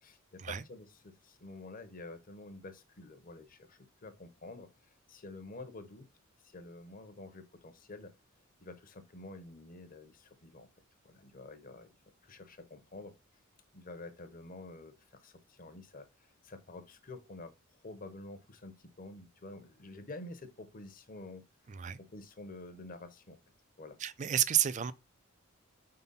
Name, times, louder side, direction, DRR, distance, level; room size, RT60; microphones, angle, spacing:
voice 1, 0.0-4.7 5.1-6.1 6.4-8.1 8.6-10.7 11.0-11.9 12.2-13.1 13.7-17.5 17.8-21.5 22.0-23.4 23.8-24.0, left 2 dB, 40° left, 0.9 m, -49 dB
voice 2, 21.7-22.0 24.0-24.9, right 11 dB, 35° right, 0.4 m, -30 dB
4.4 x 3.9 x 5.5 m
head